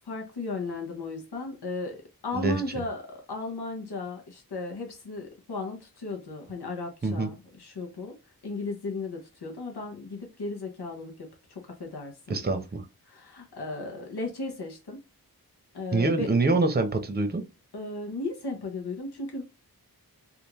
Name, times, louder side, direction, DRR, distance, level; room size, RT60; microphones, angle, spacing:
voice 1, 0.0-3.0 3.3-8.2 8.4-12.4 13.1-15.0 15.7-16.3 17.7-19.4, left 3 dB, 90° left, 0.8 m, -35 dB
voice 2, 2.3-2.8 7.0-7.3 12.3-12.8 15.9-17.4, right 3 dB, 25° right, 0.7 m, -25 dB
3.5 x 2.4 x 2.9 m
wide cardioid pair, 60°, 38 cm